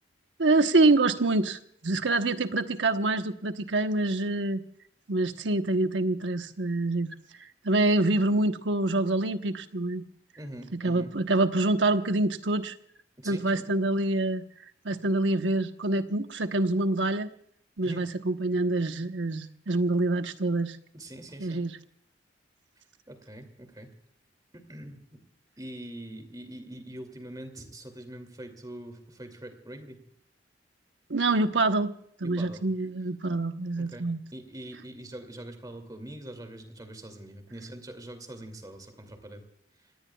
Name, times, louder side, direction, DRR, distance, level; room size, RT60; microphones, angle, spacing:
voice 1, 0.4-4.6 5.1-7.1 7.6-10.0 10.7-12.8 13.2-14.4 14.8-17.3 17.8-20.8 21.4-21.7 31.1-31.9 32.2-34.2, right 2 dB, 90° right, 8 dB, 1.1 m, -26 dB
voice 2, 10.4-11.1 13.2-13.6 17.8-18.1 20.9-21.6 23.1-23.9 24.5-25.2 25.6-30.0 32.2-32.6 33.8-34.0 34.3-39.4 39.8-39.9, right 1 dB, 20° right, 7 dB, 2.6 m, -43 dB
28.0 x 18.5 x 2.3 m, 0.66 s
head